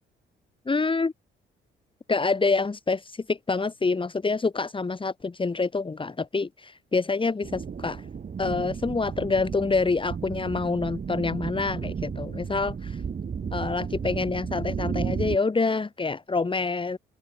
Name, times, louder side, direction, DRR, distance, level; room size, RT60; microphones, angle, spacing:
voice 1, 0.7-1.1 2.1-8.0 8.4-13.0 13.5-17.0, left 4 dB, 25° left, 3.7 m, -27 dB
sound 1, 7.4-15.4, right 6 dB, 45° right, 4.9 m, -33 dB
open air
cardioid pair, 90°, 20 cm